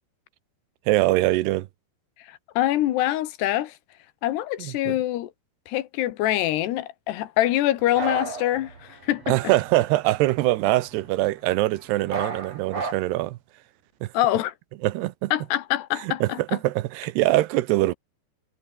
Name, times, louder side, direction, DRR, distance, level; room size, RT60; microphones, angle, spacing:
voice 1, 0.9-1.7 4.6-4.9 9.3-13.4 14.0-14.1 14.8-15.3 16.0-17.9, right 17 dB, 80° right, 2.9 m, -23 dB
voice 2, 2.3-3.7 4.2-5.3 5.7-9.4 14.1-14.5 15.3-16.4, left 14 dB, 80° left, 3.4 m, -25 dB
sound 1, 7.8-11.8 12.0-12.9, right 4 dB, 40° right, 6.0 m, -35 dB
omnidirectional pair, 4.8 m